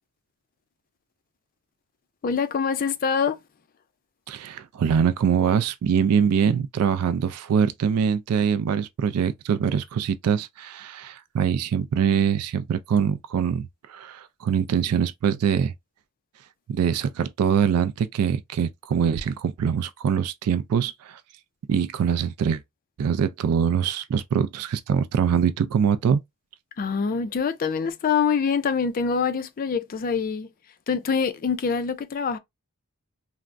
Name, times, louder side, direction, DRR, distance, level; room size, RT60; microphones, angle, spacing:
voice 1, 2.2-3.4 26.8-30.5 30.9-32.4, left 6 dB, 40° left, 0.3 m, -25 dB
voice 2, 4.3-15.7 16.7-21.2 21.7-22.6 23.0-26.2, right 7 dB, 85° right, 0.3 m, -23 dB
3.3 x 2.0 x 2.5 m
head